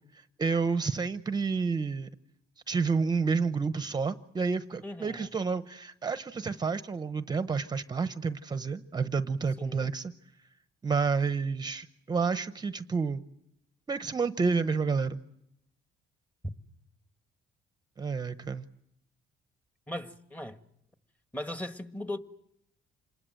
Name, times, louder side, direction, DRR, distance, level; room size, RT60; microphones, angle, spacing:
voice 1, 0.1-2.1 2.7-10.1 10.8-13.2 13.9-15.2 18.0-18.6, right 5 dB, 25° right, 0.9 m, -30 dB
voice 2, 4.8-5.3 9.6-9.9 19.9-20.6 21.3-22.2, left 1 dB, 10° left, 1.6 m, -38 dB
27.0 x 20.5 x 7.8 m
cardioid pair, 110°, 17 cm